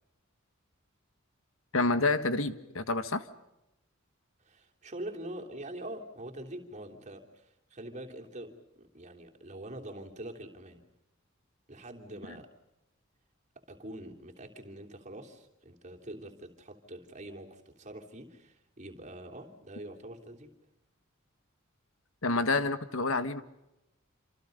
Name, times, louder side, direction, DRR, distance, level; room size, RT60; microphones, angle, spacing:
voice 1, 1.7-3.2 22.2-23.4, left 3 dB, 80° left, 11 dB, 1.6 m, -28 dB
voice 2, 4.4-10.8 11.7-12.5 13.5-20.5, right 1 dB, 35° right, 2 dB, 3.3 m, -44 dB
28.0 x 27.5 x 5.4 m, 0.91 s
head